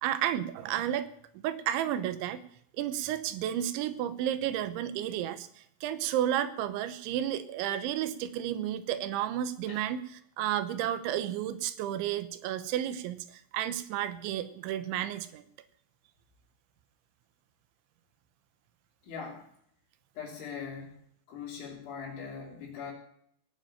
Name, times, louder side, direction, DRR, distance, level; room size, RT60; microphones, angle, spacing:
voice 1, 0.0-1.1 1.4-2.4 2.8-10.0 10.4-15.4, right 11 dB, 90° right, 13 dB, 3.3 m, -32 dB
voice 2, 19.0-19.5 20.2-21.0 21.3-22.9, left 6 dB, 85° left, -7 dB, 5.7 m, -41 dB
18.0 x 7.6 x 8.8 m, 0.68 s
omnidirectional pair, 5.3 m